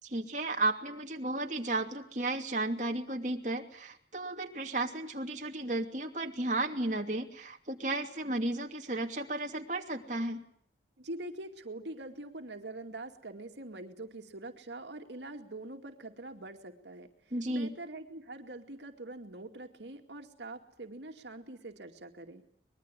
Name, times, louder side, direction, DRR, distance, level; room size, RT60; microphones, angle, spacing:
voice 1, 0.0-10.4 17.3-17.7, right 2 dB, 45° right, 2 dB, 2.8 m, -34 dB
voice 2, 11.0-17.1 17.5-22.4, right 2 dB, 90° right, 5 dB, 2.4 m, -44 dB
24.5 x 21.5 x 9.9 m, 0.64 s
head